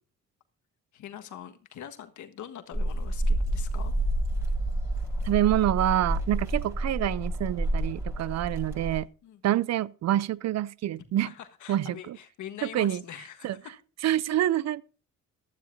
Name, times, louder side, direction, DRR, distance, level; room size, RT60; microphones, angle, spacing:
voice 1, 0.9-3.9 9.2-9.4 11.2-13.7, left 10 dB, 75° left, 1.5 m, -43 dB
sound 1, 2.7-9.0, right 1 dB, 10° right, 6.8 m, -29 dB
voice 2, 5.2-9.1 9.4-11.3 11.7-12.2 12.6-13.0 13.4-13.6 14.0-14.8, right 12 dB, 60° right, 0.5 m, -26 dB
15.5 x 12.0 x 2.6 m
cardioid pair, 90°, 30 cm